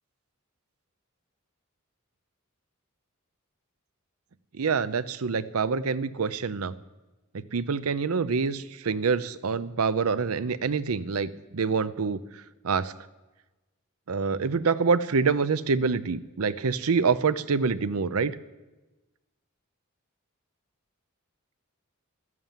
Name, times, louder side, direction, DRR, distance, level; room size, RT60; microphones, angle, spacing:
voice 1, 4.6-6.7 7.5-12.2 12.6-12.9 14.1-18.3, right 5 dB, 85° right, 15 dB, 0.6 m, -26 dB
13.5 x 11.0 x 7.4 m, 1.1 s
head